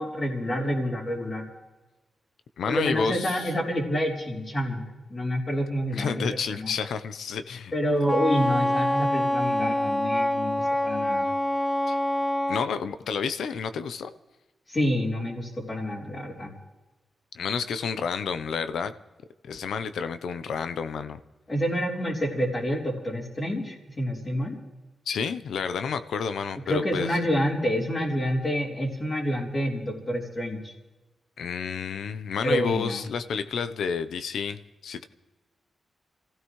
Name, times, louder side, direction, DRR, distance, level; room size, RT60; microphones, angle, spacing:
voice 1, 0.0-1.4 2.7-4.8 5.1-6.2 6.5-6.7 7.7-11.3 14.7-16.5 21.5-24.6 26.7-30.7 32.4-33.0, equal, 40° left, -7 dB, 3.9 m, -28 dB
voice 2, 2.6-3.5 5.9-7.7 8.0-8.1 11.9-12.0 12.5-14.1 17.3-18.9 19.4-21.2 25.1-27.2 31.4-35.0, left 6 dB, 90° left, 11 dB, 0.7 m, -30 dB
Wind instrument woodwind instrument, 8.1-12.7, left 1 dB, 10° left, 0.5 m, -25 dB
27.5 x 16.0 x 3.2 m, 1.1 s
cardioid pair, 90°, 0 cm